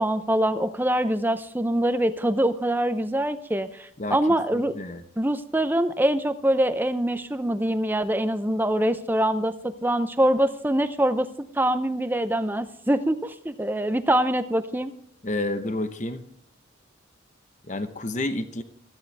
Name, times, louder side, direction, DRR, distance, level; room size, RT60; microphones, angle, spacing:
voice 1, 0.0-4.7 5.2-11.3 11.6-14.9, right 1 dB, 10° right, 11 dB, 0.6 m, -24 dB
voice 2, 4.5-5.0 15.2-16.2 17.7-18.6, left 2 dB, 35° left, 9 dB, 1.0 m, -29 dB
16.0 x 14.0 x 3.4 m, 0.66 s
head